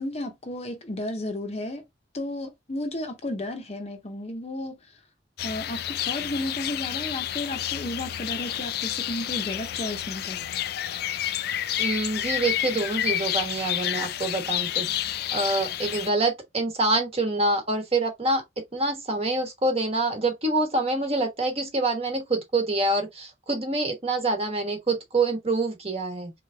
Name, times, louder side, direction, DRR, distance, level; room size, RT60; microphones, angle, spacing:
voice 1, 0.0-1.8 2.1-4.8 5.4-10.5, left 1 dB, 35° left, 0.8 m, -33 dB
sound 1, 5.4-16.1, left 12 dB, 55° left, 0.4 m, -30 dB
voice 2, 11.8-14.9 15.3-18.4 18.7-26.3, right 2 dB, 35° right, 1.2 m, -26 dB
3.7 x 3.4 x 3.4 m
head